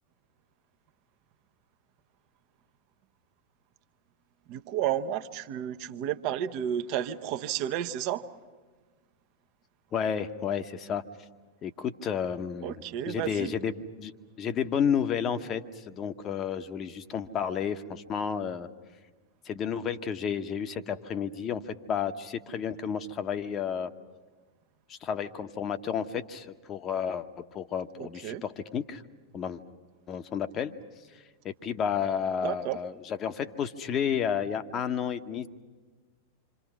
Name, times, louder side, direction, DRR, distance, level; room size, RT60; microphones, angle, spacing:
voice 1, 4.5-8.2 12.6-13.5 28.0-28.4 32.4-32.8, right 10 dB, 45° right, 10 dB, 0.9 m, -32 dB
voice 2, 9.9-11.0 11.6-14.1 14.4-18.7 19.4-23.9 24.9-29.0 29.3-29.6 30.1-30.7 31.4-35.5, left 7 dB, 30° left, 10 dB, 1.0 m, -31 dB
27.5 x 26.0 x 6.1 m, 1.4 s
figure-of-eight pair, 90°, 0 cm